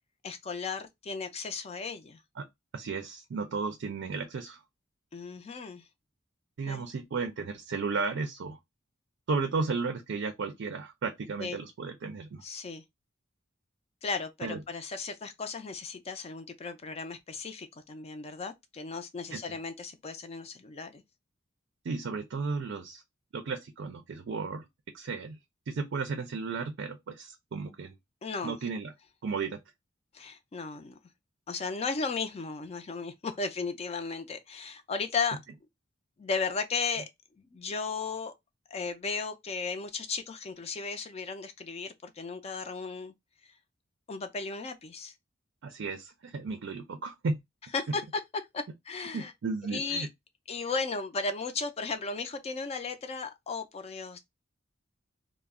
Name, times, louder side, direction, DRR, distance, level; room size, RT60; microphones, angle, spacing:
voice 1, 0.2-2.2 5.1-5.8 6.7-6.9 11.4-11.6 12.4-12.8 14.0-21.0 28.2-28.6 30.1-31.0 31.5-35.4 36.2-37.1 37.4-38.3 38.7-43.1 43.4-43.5 44.1-45.1 47.7-48.2 48.5-49.3 49.7-50.1 50.5-54.2, left 4 dB, 30° left, 0.4 m, -35 dB
voice 2, 2.7-4.6 6.6-8.6 9.3-12.4 14.4-14.6 19.3-19.4 21.8-23.0 23.3-24.7 24.9-25.4 25.7-28.0 28.4-28.9 29.2-29.6 45.6-47.4 47.9-48.0 49.1-50.1, right 4 dB, 65° right, 0.4 m, -34 dB
2.2 x 2.0 x 3.5 m
head